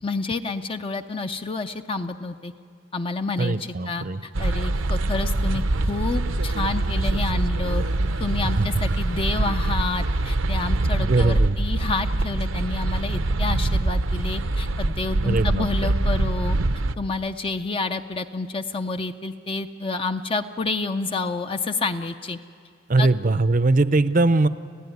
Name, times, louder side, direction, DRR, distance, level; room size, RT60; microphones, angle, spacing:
voice 1, 0.0-2.5 2.9-7.8 8.2-16.6 17.0-22.4 23.0-23.1, left 3 dB, 25° left, 7 dB, 0.5 m, -29 dB
voice 2, 3.4-4.2 8.4-8.7 11.0-11.6 15.2-15.7 22.9-24.5, right 2 dB, 40° right, 13 dB, 0.6 m, -21 dB
sound 1, 4.3-17.0, right 2 dB, 75° right, 0.8 m, -24 dB
sound 2, 4.7-10.3, left 1 dB, 85° left, 6.7 m, -52 dB
29.0 x 15.5 x 9.5 m, 2.4 s
head